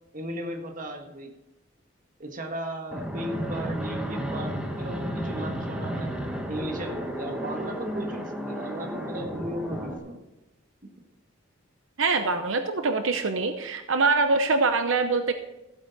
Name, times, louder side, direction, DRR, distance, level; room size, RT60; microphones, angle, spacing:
voice 1, 0.1-1.3 2.2-6.1 6.5-10.2, equal, 45° right, 3 dB, 1.6 m, -36 dB
Fixed-wing aircraft airplane, 2.9-10.0, right 1 dB, 5° right, 1.4 m, -32 dB
voice 2, 12.0-15.3, right 3 dB, 85° right, 7 dB, 0.8 m, -24 dB
15.5 x 8.4 x 4.1 m, 0.96 s
head